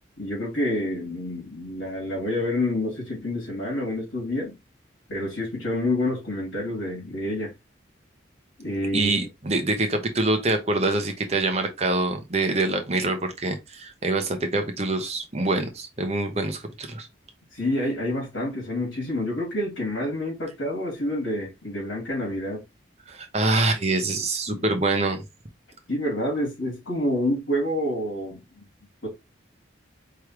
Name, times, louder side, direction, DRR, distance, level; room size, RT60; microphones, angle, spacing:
voice 1, 0.2-4.5 5.1-7.5 8.6-9.3 17.5-22.6 24.5-24.6 25.9-28.7 29.0-29.1, left 1 dB, 70° left, 2.8 m, -28 dB
voice 2, 8.9-17.1 23.1-25.2, right 2 dB, 35° right, 0.9 m, -25 dB
4.8 x 3.3 x 3.0 m
head